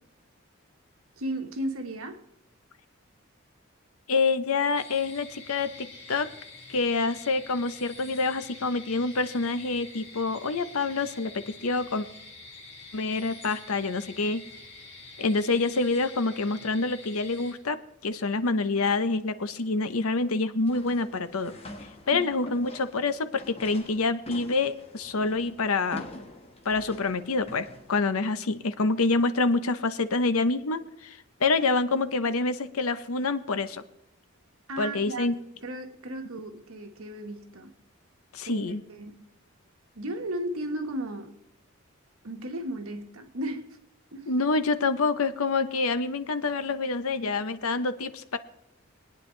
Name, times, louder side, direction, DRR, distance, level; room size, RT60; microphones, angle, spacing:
voice 1, 1.2-2.2 22.1-22.3 34.7-35.3 35.6-37.7 38.4-39.2 39.9-41.3 42.2-43.8 44.1-44.3 47.2-47.4, right 1 dB, 80° right, 4 dB, 1.5 m, -35 dB
voice 2, 4.1-6.3 6.7-12.1 12.9-14.4 15.2-17.8 18.0-21.5 22.1-26.1 26.6-33.8 34.8-35.4 38.3-38.8 44.3-48.4, left 3 dB, 85° left, 12 dB, 0.8 m, -27 dB
sound 1, 4.7-17.5, left 3 dB, 60° left, 5.4 m, -47 dB
sound 2, 20.6-28.0, left 1 dB, 30° left, 1.2 m, -45 dB
23.0 x 9.3 x 3.2 m, 0.86 s
head